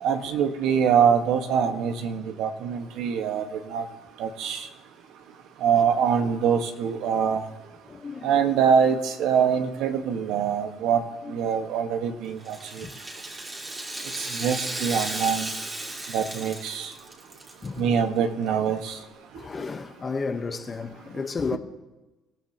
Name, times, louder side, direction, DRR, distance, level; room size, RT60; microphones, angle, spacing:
voice 1, 0.0-3.8 4.2-4.7 5.6-7.5 8.2-11.0 11.3-12.8 14.3-15.5 16.1-16.9 17.8-19.0, right 7 dB, 75° right, 1.4 m, -24 dB
voice 2, 7.9-8.4 11.2-11.5 12.8-13.0 14.1-14.2 17.6-18.0 19.3-21.6, left 4 dB, 30° left, 1.1 m, -33 dB
Rattle (instrument), 12.4-17.7 18.0-18.1 18.9-19.0, right 2 dB, 25° right, 2.8 m, -35 dB
26.5 x 15.0 x 2.9 m
supercardioid pair, 90°, 0 cm